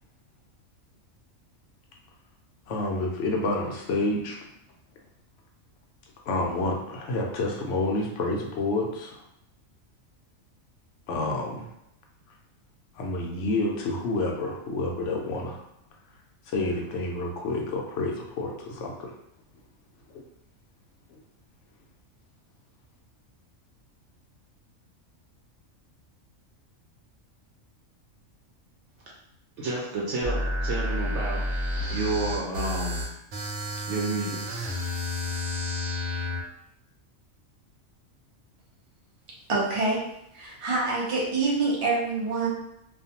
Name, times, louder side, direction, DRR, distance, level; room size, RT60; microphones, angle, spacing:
voice 1, 2.7-4.4 6.3-9.2 11.1-11.7 12.9-15.6 16.5-19.1 20.1-20.2 21.1-21.2, left 2 dB, 70° left, 0 dB, 0.8 m, -29 dB
voice 2, 29.6-31.4 31.9-33.0 33.9-34.4, right 2 dB, 65° right, -4 dB, 0.8 m, -30 dB
sound 1, 30.2-36.4, left 1 dB, 90° right, 1.0 m, -30 dB
voice 3, 39.5-40.0 40.3-42.5, right 3 dB, 50° right, -4 dB, 0.3 m, -26 dB
2.5 x 2.2 x 2.7 m, 0.78 s
omnidirectional pair, 1.4 m